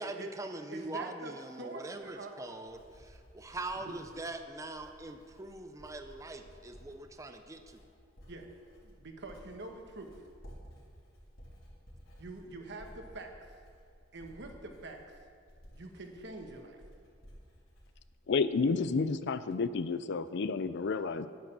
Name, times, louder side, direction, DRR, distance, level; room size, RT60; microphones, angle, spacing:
voice 1, 0.0-7.8, right 2 dB, 15° right, 6 dB, 0.5 m, -42 dB
voice 2, 0.7-1.3 1.6-2.3 3.7-3.9 8.3-8.5 8.8-10.2 12.2-13.6 14.1-15.2 15.7-16.8, right 2 dB, 60° right, 4 dB, 1.3 m, -45 dB
Writing, 2.5-19.0 19.3-19.7, equal, 90° left, 3.4 m, -56 dB
voice 3, 18.3-21.3, left 4 dB, 60° left, 13 dB, 0.5 m, -30 dB
10.0 x 9.3 x 6.1 m, 2.2 s
head